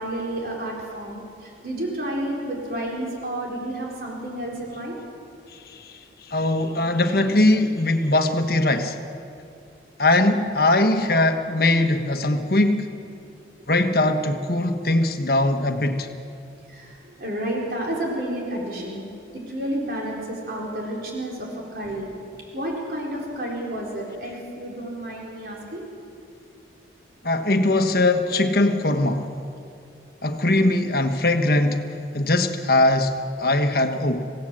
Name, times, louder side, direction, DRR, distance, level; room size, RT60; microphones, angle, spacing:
voice 1, 0.0-5.0 16.7-19.1 19.3-22.1 22.5-25.8, right 1 dB, 55° right, -2 dB, 4.4 m, -30 dB
voice 2, 6.3-9.0 10.0-13.0 13.7-16.1 27.2-29.3 30.2-31.8 32.1-34.3, left 2 dB, 55° left, 6 dB, 1.4 m, -21 dB
27.0 x 17.0 x 7.6 m, 2.5 s
head